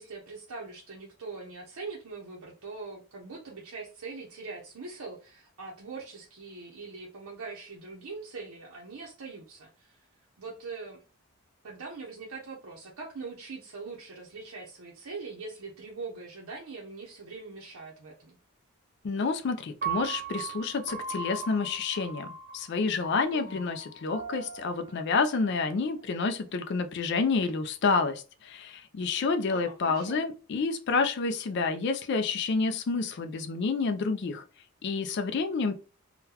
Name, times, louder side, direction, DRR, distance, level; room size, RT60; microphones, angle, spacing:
voice 1, 0.0-10.1 10.4-11.0 11.6-18.4 23.3-23.7 29.5-30.2, right 4 dB, 80° right, -2 dB, 0.7 m, -42 dB
voice 2, 19.0-22.3 22.5-34.4 34.8-35.7, left 4 dB, 50° left, 8 dB, 0.3 m, -29 dB
Piano, 19.8-26.0, right 6 dB, 35° right, 0.8 m, -39 dB
3.7 x 2.2 x 2.8 m, 0.33 s
head